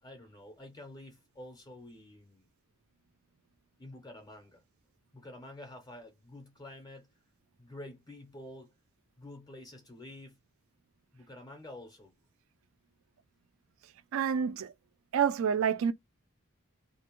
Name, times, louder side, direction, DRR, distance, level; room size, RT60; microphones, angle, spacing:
voice 1, 0.0-2.5 3.8-4.6 5.1-7.1 7.6-8.7 9.2-10.4 11.1-12.1, left 1 dB, 20° left, 0.5 m, -48 dB
voice 2, 14.1-14.7 15.1-15.9, right 7 dB, 65° right, 0.3 m, -28 dB
2.5 x 2.1 x 2.9 m
head